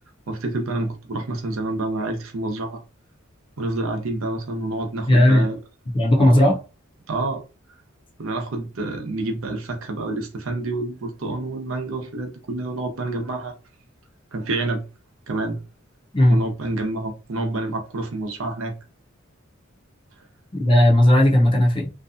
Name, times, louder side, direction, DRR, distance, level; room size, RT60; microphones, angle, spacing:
voice 1, 0.3-2.8 3.6-5.6 6.2-6.5 7.1-7.4 8.2-13.5 14.3-14.8 15.3-15.6 16.3-18.7, right 2 dB, 80° right, 0.7 m, -28 dB
voice 2, 5.1-5.4 5.9-6.6 16.1-16.4 20.5-21.9, left 1 dB, 25° left, 0.5 m, -16 dB
2.6 x 2.2 x 2.5 m
head